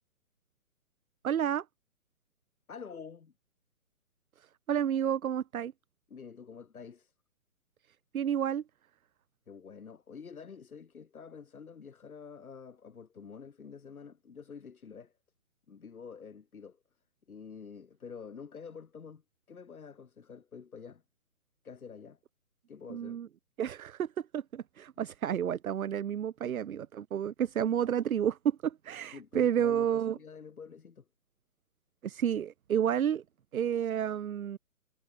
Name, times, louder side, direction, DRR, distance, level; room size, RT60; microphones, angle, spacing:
voice 1, 1.2-1.6 4.7-5.7 8.1-8.6 22.9-23.3 23.6-30.2 32.0-33.2 33.5-34.6, right 9 dB, 70° right, 0.9 m, -30 dB
voice 2, 2.7-3.3 6.1-7.1 9.5-15.1 15.7-16.8 17.3-19.2 19.5-21.0 21.6-22.2 22.7-23.2 29.1-31.1, left 6 dB, 75° left, 4.6 m, -48 dB
hypercardioid pair, 150°, 43 cm